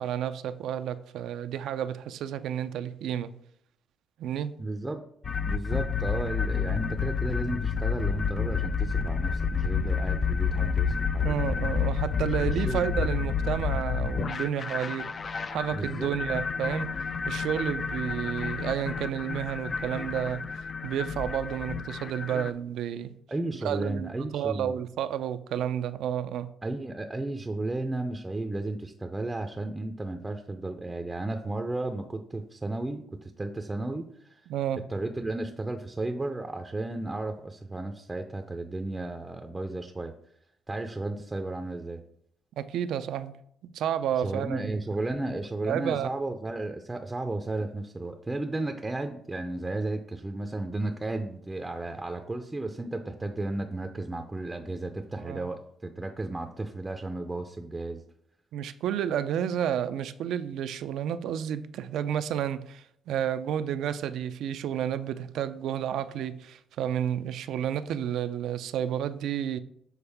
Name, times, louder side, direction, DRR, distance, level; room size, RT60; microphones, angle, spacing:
voice 1, 0.0-3.3 4.2-4.5 11.2-16.9 17.3-20.4 20.8-23.2 23.6-26.5 34.5-34.8 42.6-43.3 43.6-44.7 45.6-46.1 55.2-55.5 58.5-69.6, right 9 dB, 80° right, 0.4 m, -31 dB
voice 2, 4.6-5.0 5.4-11.4 12.4-12.8 15.7-16.1 22.3-22.5 23.3-24.8 26.6-34.5 34.9-40.1 40.7-42.0 44.2-58.0, right 2 dB, 15° right, 0.5 m, -34 dB
sound 1, 5.2-22.5, left 6 dB, 45° left, 0.4 m, -30 dB
7.1 x 3.9 x 3.5 m
cardioid pair, 90°, 0 cm